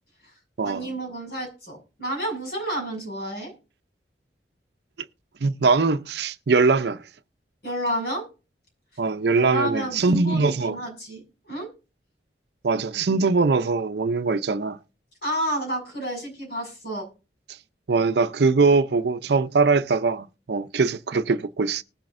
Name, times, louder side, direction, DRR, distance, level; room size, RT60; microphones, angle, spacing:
voice 1, 0.6-3.5 7.6-8.2 9.3-11.7 15.2-17.0, right 1 dB, 60° left, 6.4 m, -30 dB
voice 2, 5.4-7.0 9.0-10.8 12.6-14.8 17.9-21.8, right 4 dB, 65° right, 0.6 m, -22 dB
19.5 x 7.4 x 2.6 m
head